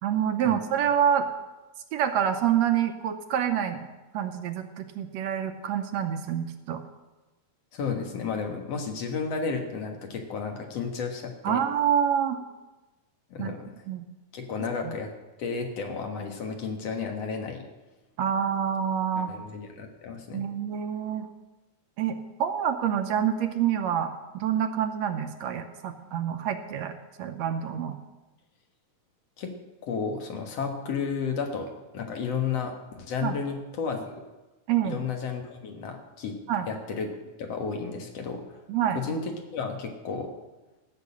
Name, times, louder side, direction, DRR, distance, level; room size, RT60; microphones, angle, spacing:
voice 1, 0.0-1.3 1.9-3.8 4.1-6.8 11.4-12.4 13.4-13.5 13.9-14.1 14.8-15.0 18.2-19.3 20.3-21.3 22.0-26.9 27.2-28.0 33.2-33.4 34.7-35.0 36.5-36.7 38.7-39.0, right 9 dB, 70° right, 7 dB, 1.9 m, -27 dB
voice 2, 7.7-11.6 13.3-13.7 14.3-15.1 15.4-17.7 19.2-20.4 29.4-29.5 29.8-34.2 34.8-36.4 36.7-37.1 37.4-38.6 39.0-40.3, left 5 dB, 60° left, 3 dB, 2.4 m, -32 dB
14.5 x 6.5 x 8.4 m, 1.1 s
omnidirectional pair, 3.3 m